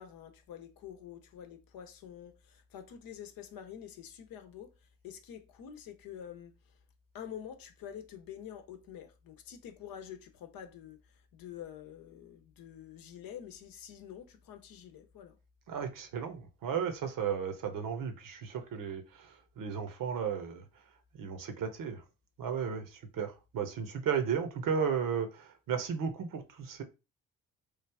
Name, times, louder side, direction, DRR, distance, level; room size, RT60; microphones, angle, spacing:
voice 1, 0.0-4.7 5.0-6.5 7.1-11.0 11.3-15.4, left 9 dB, 60° left, 0.8 m, -47 dB
voice 2, 15.7-20.6 21.1-22.0 22.4-26.8, right 7 dB, 55° right, 0.9 m, -34 dB
3.2 x 2.3 x 3.4 m
hypercardioid pair, 50°, 40 cm